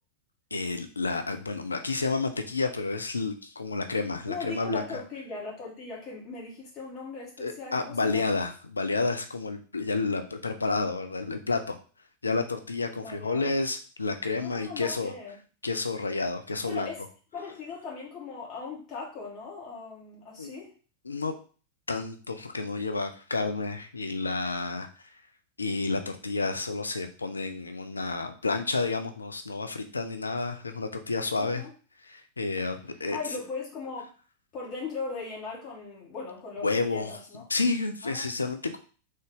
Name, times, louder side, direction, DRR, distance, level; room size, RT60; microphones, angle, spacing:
voice 1, 0.5-5.0 7.4-11.8 12.2-15.1 15.6-16.9 20.4-20.5 21.1-21.3 21.9-24.9 25.6-31.6 32.0-33.2 36.6-38.8, left 3 dB, 80° left, 7 dB, 0.4 m, -30 dB
voice 2, 4.3-8.3 13.0-13.5 14.4-15.3 16.7-17.0 17.3-20.7 31.4-31.7 33.1-34.1 34.5-37.4 38.0-38.3, left 4 dB, 35° left, -4 dB, 1.2 m, -39 dB
3.6 x 2.6 x 3.5 m, 0.38 s
figure-of-eight pair, 90°, 0 cm